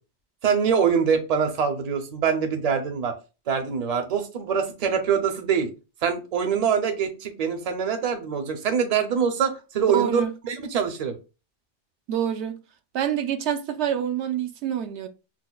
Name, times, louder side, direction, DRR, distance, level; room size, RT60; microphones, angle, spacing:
voice 1, 0.4-3.1 3.5-5.7 6.0-11.1, right 7 dB, 40° right, 0.6 m, -24 dB
voice 2, 9.9-10.3 12.1-12.6 12.9-15.1, right 9 dB, 70° right, 0.8 m, -26 dB
6.1 x 2.1 x 2.3 m
omnidirectional pair, 1.3 m